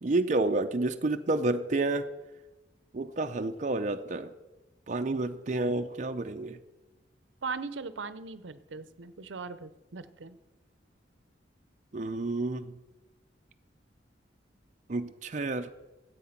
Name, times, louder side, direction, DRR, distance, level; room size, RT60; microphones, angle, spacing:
voice 1, 0.0-2.0 2.9-4.3 4.9-6.6 11.9-12.7 14.9-15.7, right 2 dB, 40° right, 6 dB, 0.5 m, -29 dB
voice 2, 7.4-10.4, right 4 dB, 85° right, 14 dB, 0.7 m, -39 dB
13.5 x 8.2 x 5.8 m, 1.1 s
head